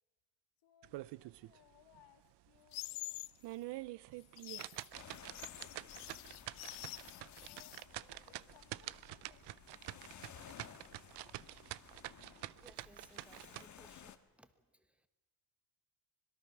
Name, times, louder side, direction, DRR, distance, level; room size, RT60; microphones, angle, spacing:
voice 1, 0.6-3.2 7.4-10.6, left 10 dB, 60° left, -2 dB, 2.6 m, -67 dB
sound 1, 0.8-1.6 2.0-2.1 2.6-2.7 3.2-13.6, right 17 dB, 60° right, 0.6 m, -47 dB
sound 2, 2.7-3.4 4.2-7.8, left 23 dB, 80° left, 0.6 m, -47 dB
sound 3, 4.9-14.2, left 8 dB, 35° left, 1.5 m, -57 dB
voice 2, 12.3-15.1, right 1 dB, 5° right, 11 dB, 1.2 m, -63 dB
25.0 x 21.5 x 6.0 m, 1.1 s
cardioid pair, 125°, 48 cm